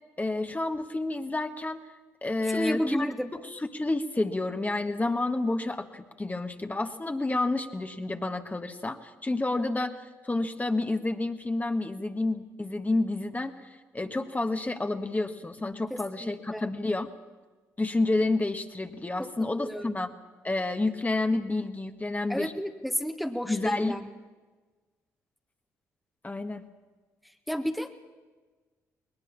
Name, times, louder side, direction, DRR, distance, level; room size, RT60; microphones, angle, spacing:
voice 1, 0.2-1.8 2.2-3.1 3.3-3.4 3.7-17.1 17.8-20.1 20.4-22.5 23.5-24.0 26.2-26.6, left 2 dB, 20° left, 6 dB, 1.5 m, -29 dB
voice 2, 2.4-3.3 15.9-16.6 19.2-19.3 19.6-20.0 22.3-24.1 27.5-27.9, equal, ahead, 7 dB, 1.5 m, -31 dB
20.5 x 19.5 x 7.3 m, 1.3 s
hypercardioid pair, 45°, 8 cm